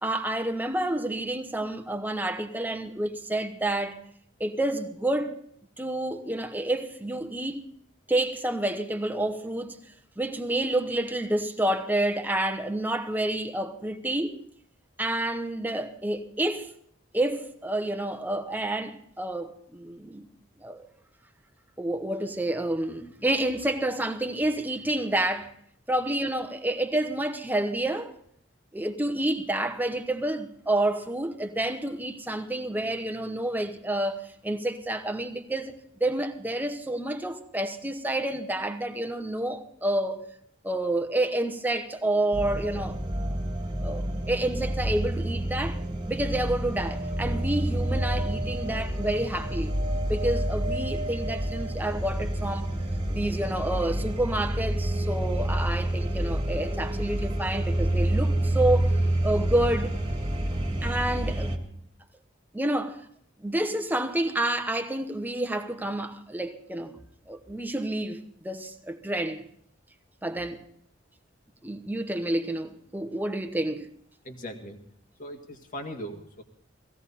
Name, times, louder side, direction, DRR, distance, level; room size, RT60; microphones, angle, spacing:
voice 1, 0.0-4.0 4.4-5.3 5.8-7.6 8.1-9.8 10.2-14.4 15.0-16.7 17.1-20.3 20.6-20.9 21.8-25.5 25.9-28.1 28.7-40.3 40.6-43.0 43.8-45.8 46.1-49.7 50.1-52.7 53.1-58.9 59.2-59.9 60.8-61.5 62.5-63.1 63.4-66.9 67.3-68.2 68.4-69.4 70.2-70.6 71.6-73.9, right 1 dB, 10° right, 1.0 m, -29 dB
sound 1, 42.3-61.6, right 1 dB, 25° right, 2.0 m, -28 dB
sound 2, 46.7-52.9 55.2-55.3 55.4-55.5, right 1 dB, 45° right, 0.8 m, -39 dB
voice 2, 74.2-74.8 75.2-76.4, equal, 45° left, 1.9 m, -39 dB
17.5 x 16.0 x 4.2 m
head